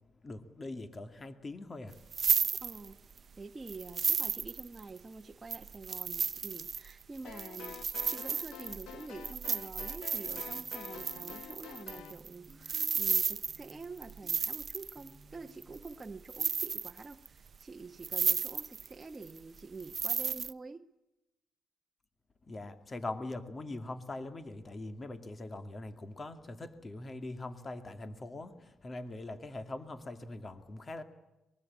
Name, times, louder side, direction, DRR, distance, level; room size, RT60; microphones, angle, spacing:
voice 1, 0.2-2.0 22.5-31.0, left 2 dB, 30° left, 2.5 m, -42 dB
sound 1, 1.9-3.2 3.7-5.0 5.5-15.1 15.6-16.0 16.3-17.3 17.6-17.7 18.0-18.9 19.2-20.5, right 6 dB, 45° right, 0.8 m, -33 dB
voice 2, 2.5-3.0 3.4-20.9, right 3 dB, 25° right, 1.2 m, -47 dB
sound 2, 7.2-12.2, left 9 dB, 85° left, 1.4 m, -48 dB
sound 3, 10.5-16.5, equal, ahead, 5.3 m, -60 dB
24.0 x 22.5 x 8.6 m
cardioid pair, 90°, 0 cm